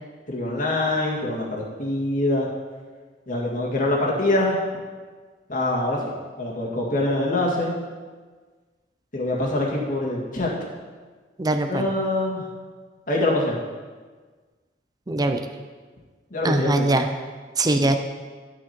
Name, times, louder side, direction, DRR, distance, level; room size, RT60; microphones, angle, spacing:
voice 1, 0.3-2.5 3.3-4.6 5.5-6.0 6.4-7.7 9.1-10.5 11.7-12.5 13.1-13.6 16.3-16.8, left 1 dB, 50° left, -3 dB, 2.0 m, -24 dB
voice 2, 11.4-11.8 15.1-15.4 16.4-17.1 17.6-18.0, right 2 dB, 20° right, 7 dB, 0.5 m, -21 dB
11.5 x 6.3 x 4.4 m, 1.4 s
head